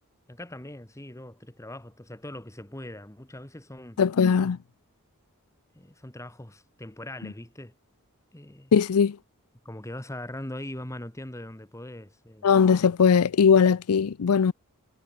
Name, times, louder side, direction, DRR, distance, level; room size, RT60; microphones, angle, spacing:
voice 1, 0.3-4.0 5.7-7.7 8.3-8.7 9.7-12.5, left 1 dB, 15° left, 1.6 m, -41 dB
voice 2, 4.0-4.6 8.7-9.2 12.4-14.5, left 6 dB, 70° left, 0.5 m, -20 dB
head